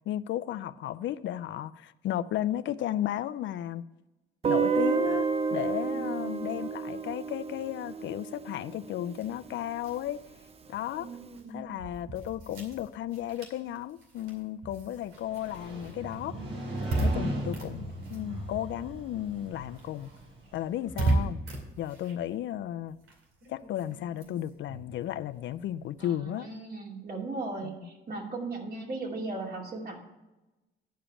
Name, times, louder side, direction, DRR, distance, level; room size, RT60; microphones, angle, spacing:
voice 1, 0.1-3.8 4.5-10.2 10.7-11.1 11.5-16.4 17.0-20.1 20.5-21.4 21.8-23.0 23.5-26.5 27.6-27.7, left 12 dB, 70° left, 0.4 m, -34 dB
Guitar, 4.4-9.3, right 5 dB, 30° right, 0.5 m, -30 dB
voice 2, 5.9-6.4 11.0-11.7 17.1-17.7 26.0-30.0, right 3 dB, 50° right, 2.6 m, -38 dB
sound 1, 9.1-19.0 19.2-26.2, right 2 dB, 85° right, 2.4 m, -37 dB
Motorcycle, 15.1-21.0, right 1 dB, 65° right, 3.8 m, -39 dB
10.0 x 5.0 x 7.0 m
cardioid pair, 90°, 20 cm